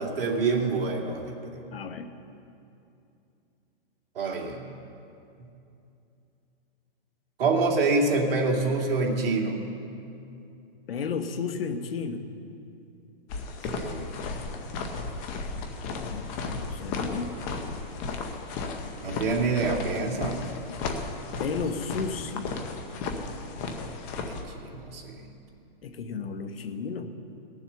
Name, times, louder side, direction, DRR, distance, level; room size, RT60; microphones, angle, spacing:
voice 1, 0.0-1.6 4.1-4.7 7.4-9.6 13.7-14.1 19.0-20.4 24.2-25.3, right 3 dB, 70° right, -1 dB, 2.5 m, -27 dB
voice 2, 1.7-2.1 10.9-12.2 15.9-17.3 21.4-22.5 25.8-27.1, left 5 dB, 75° left, 8 dB, 1.2 m, -33 dB
sound 1, 13.3-24.4, left 3 dB, 20° left, 0.6 m, -34 dB
18.5 x 7.2 x 6.8 m, 2.7 s
hypercardioid pair, 165°, 29 cm